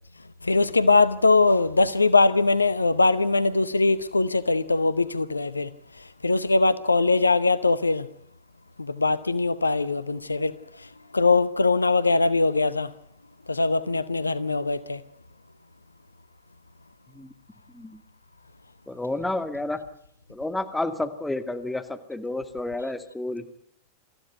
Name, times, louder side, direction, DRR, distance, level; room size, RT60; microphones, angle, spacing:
voice 1, 0.4-5.7 6.2-8.1 8.8-12.9 13.5-15.0, left 3 dB, 80° left, 0.9 m, -22 dB
voice 2, 18.9-19.8 20.3-23.4, left 2 dB, 5° left, 2.2 m, -30 dB
25.5 x 15.0 x 9.3 m
figure-of-eight pair, 90°, 0 cm